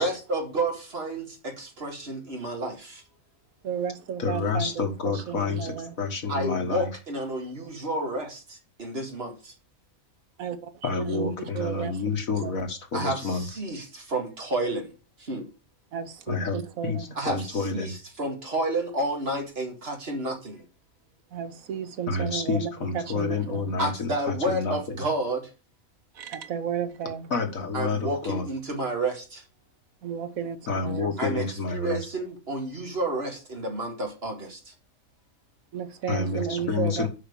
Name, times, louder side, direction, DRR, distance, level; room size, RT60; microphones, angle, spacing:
voice 1, 0.0-3.0 6.3-9.5 12.9-14.9 15.2-15.5 17.2-20.6 23.8-25.5 27.7-29.4 31.2-34.7, right 1 dB, 45° right, 2.3 m, -30 dB
voice 2, 3.6-6.0 10.4-12.5 15.9-17.1 21.3-23.7 26.1-27.3 30.0-30.6 30.8-31.1 35.7-37.1, right 8 dB, 85° right, 1.4 m, -33 dB
voice 3, 4.2-6.9 10.8-13.5 16.3-16.6 16.8-17.0 17.3-17.9 22.1-25.0 27.3-28.5 30.7-32.0 36.1-37.1, left 4 dB, 80° left, 2.1 m, -29 dB
6.3 x 5.8 x 7.0 m
omnidirectional pair, 1.4 m